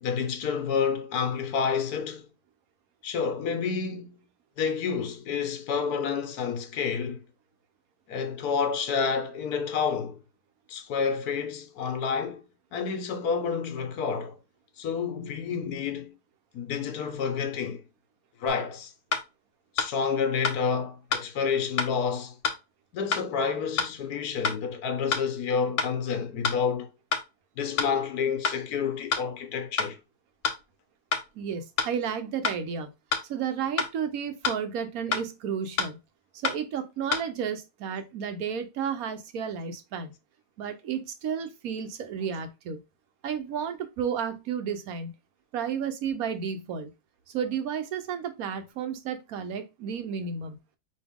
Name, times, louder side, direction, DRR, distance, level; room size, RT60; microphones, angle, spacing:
voice 1, 0.0-2.3 3.0-4.2 4.6-7.2 8.1-10.2 10.7-12.4 12.7-14.4 14.8-16.1 16.5-17.8 18.4-18.9 19.7-22.4 22.9-26.9 27.6-30.0, left 6 dB, 75° left, 1.3 m, -29 dB
sound 1, 18.5-18.6 19.1-19.3 19.8-19.9 20.4-20.6 21.1-21.3 21.8-21.9 22.4-22.6 23.1-23.3 23.8-23.9 24.4-24.6 25.1-25.3 25.8-25.9 26.4-26.6 27.1-27.3 27.8-27.9 28.4-28.6 29.1-29.3 29.8-29.9 30.4-30.6 31.1-31.3 31.8-31.9 32.4-32.6 33.1-33.3 33.8-33.9 34.4-34.6 35.1-35.3 35.8-35.9 36.4-36.6 37.1-37.2, left 5 dB, 55° left, 1.1 m, -27 dB
voice 2, 31.3-32.9 33.2-36.0 36.3-40.1 40.6-42.8 43.2-45.1 45.5-46.9 47.3-50.6, right 7 dB, 65° right, 1.2 m, -32 dB
5.3 x 2.8 x 3.5 m
omnidirectional pair, 1.7 m